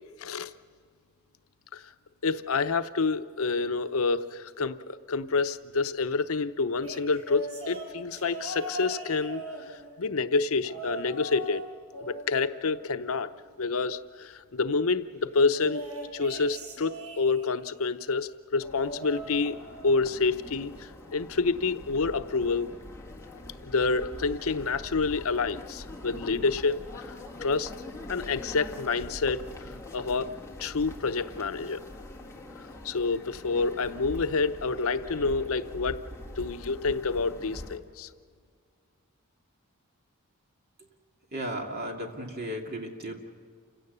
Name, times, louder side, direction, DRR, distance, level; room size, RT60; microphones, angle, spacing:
voice 1, 0.2-0.5 1.7-1.8 2.2-11.6 12.0-13.3 13.6-15.8 16.1-19.6 19.8-22.7 23.7-27.2 27.4-27.7 28.1-29.5 29.9-30.3 30.6-31.8 32.8-36.0 36.4-38.1, left 4 dB, 75° left, 11 dB, 0.7 m, -28 dB
sound 1, 6.8-10.1 10.6-11.6 11.9-13.5 15.5-17.7 18.6-20.1 20.4-20.8 21.9-22.0, right 1 dB, 85° right, 6.0 m, -40 dB
sound 2, 18.6-37.8, left 1 dB, 15° left, 1.7 m, -43 dB
voice 2, 41.3-43.1, right 1 dB, 45° right, 1 dB, 2.6 m, -35 dB
28.5 x 16.5 x 6.8 m, 2.1 s
head